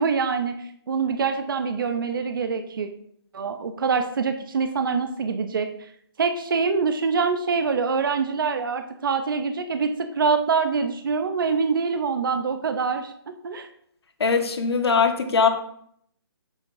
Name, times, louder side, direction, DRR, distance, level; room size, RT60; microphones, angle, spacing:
voice 1, 0.0-2.9 3.3-5.9 6.2-13.1 13.4-13.7, right 5 dB, 55° right, 8 dB, 0.7 m, -25 dB
voice 2, 14.2-15.5, left 5 dB, 75° left, 5 dB, 1.4 m, -21 dB
8.1 x 7.2 x 2.7 m, 0.68 s
hypercardioid pair, 170°, 13 cm